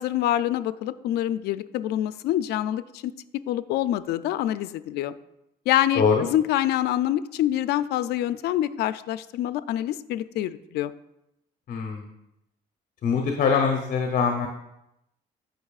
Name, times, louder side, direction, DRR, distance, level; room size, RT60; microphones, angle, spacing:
voice 1, 0.0-3.1 3.5-5.1 5.7-10.9, left 12 dB, 75° left, 14 dB, 0.4 m, -26 dB
voice 2, 5.9-6.3 11.7-12.1 13.0-14.5, left 6 dB, 55° left, 3 dB, 0.9 m, -23 dB
15.5 x 5.4 x 2.4 m, 0.85 s
cardioid pair, 110°, 17 cm